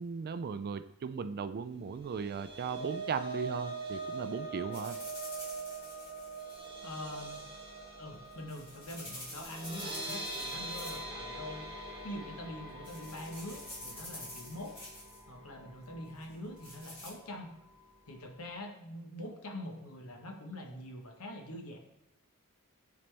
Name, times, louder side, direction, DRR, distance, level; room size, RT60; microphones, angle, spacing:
voice 1, 0.0-5.0, right 5 dB, 45° right, 12 dB, 0.3 m, -37 dB
sound 1, 2.0-16.2 16.6-16.8 17.1-17.2, right 3 dB, 25° right, 1.4 m, -43 dB
sound 2, 4.7-6.6 8.1-11.2 11.4-11.9 12.4-12.6 12.8-15.2 16.2-17.1, left 1 dB, 25° left, 2.5 m, -48 dB
voice 2, 6.8-7.4 8.0-11.6 12.0-14.8 15.3-17.5 18.1-21.8, left 1 dB, 70° left, 3 dB, 1.1 m, -44 dB
10.5 x 4.1 x 3.3 m, 0.85 s
head